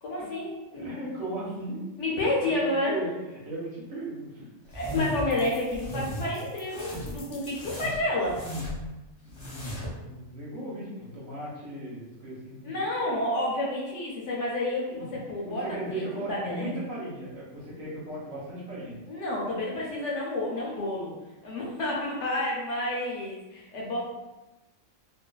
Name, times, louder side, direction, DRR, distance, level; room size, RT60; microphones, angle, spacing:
voice 1, 0.0-0.9 2.0-3.0 4.7-8.4 12.6-16.7 19.1-21.1 21.4-24.1, left 1 dB, 65° left, -4 dB, 0.9 m, -30 dB
voice 2, 0.8-1.8 2.2-2.5 2.8-3.1 3.3-4.5 9.2-12.8 14.9-15.1 15.5-19.0, right 1 dB, 75° right, -5 dB, 1.2 m, -37 dB
sound 1, 4.7-5.3 5.7-6.2 6.7-7.2 7.5-8.9 9.3-10.0, left 1 dB, 50° left, 0.3 m, -35 dB
sound 2, 5.3-8.1, left 3 dB, 90° left, 1.0 m, -53 dB
2.5 x 2.4 x 2.2 m, 1.0 s
omnidirectional pair, 1.4 m